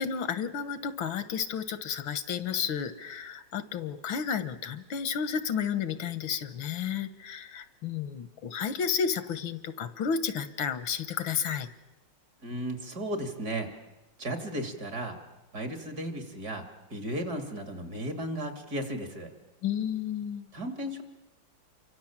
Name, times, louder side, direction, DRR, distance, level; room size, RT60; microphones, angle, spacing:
voice 1, 0.0-11.7 19.6-20.5, left 7 dB, 80° left, 12 dB, 1.9 m, -32 dB
voice 2, 12.4-13.7 14.2-15.2 15.5-19.3 20.5-21.0, right 1 dB, 50° right, 5 dB, 3.4 m, -35 dB
28.5 x 24.0 x 7.4 m, 1.0 s
omnidirectional pair, 2.2 m